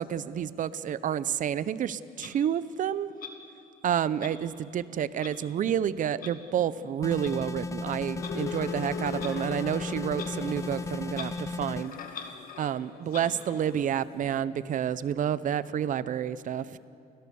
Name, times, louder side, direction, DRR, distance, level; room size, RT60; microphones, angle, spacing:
voice 1, 0.0-3.1 3.8-12.0 12.6-16.8, right 9 dB, 50° right, 16 dB, 0.8 m, -29 dB
Clock, 2.2-2.3 3.2-3.3 4.2-4.3 5.2-5.3 6.2-6.3 7.2-7.3 8.2-8.3 9.2-9.3 10.1-10.3 10.6-10.7 11.1-11.3 11.8-12.7 13.1-13.3, left 7 dB, 55° left, 2.1 m, -42 dB
sound 1, 7.0-11.9, left 3 dB, 20° left, 0.8 m, -35 dB
sound 2, 8.1-14.1, left 8 dB, 70° left, 1.5 m, -42 dB
29.0 x 17.0 x 7.1 m, 2.6 s
cardioid pair, 110°, 17 cm